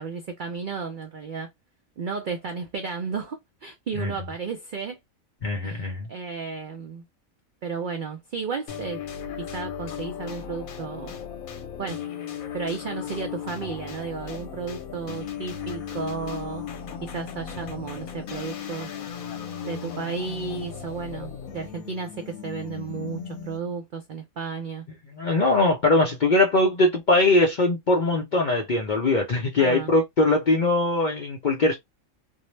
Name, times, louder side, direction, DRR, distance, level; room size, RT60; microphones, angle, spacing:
voice 1, 0.0-1.5 2.0-5.0 5.6-7.0 7.6-9.0 9.4-11.1 11.8-12.0 12.5-16.6 17.0-18.9 19.6-24.8 29.6-29.9, right 5 dB, 70° right, 0.4 m, -33 dB
voice 2, 5.4-6.1 25.1-31.7, left 2 dB, 55° left, 0.5 m, -21 dB
sound 1, 8.7-23.8, left 7 dB, 85° left, 1.1 m, -36 dB
2.6 x 2.0 x 3.0 m
omnidirectional pair, 1.4 m